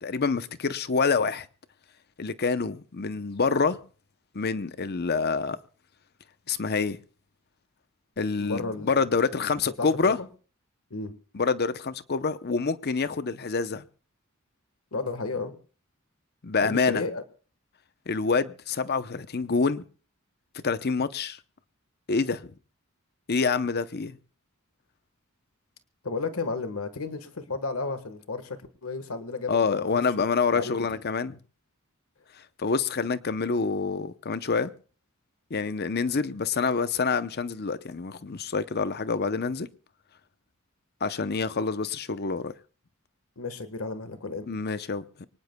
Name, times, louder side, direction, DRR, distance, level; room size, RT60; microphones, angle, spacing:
voice 1, 0.0-1.5 2.2-3.8 4.3-5.6 6.5-7.0 8.2-10.2 11.3-13.8 16.4-17.0 18.1-19.8 20.6-21.4 22.1-22.5 23.3-24.2 29.5-31.4 32.6-34.7 35.5-39.7 41.0-42.5 44.5-45.3, left 4 dB, 50° left, 0.7 m, -27 dB
voice 2, 8.4-9.0 9.4-9.5 9.8-10.3 10.9-11.1 14.9-15.6 16.6-17.2 26.0-29.8 30.2-30.3 30.5-31.0 43.4-44.5, left 3 dB, 80° left, 1.5 m, -33 dB
24.5 x 18.5 x 2.3 m
head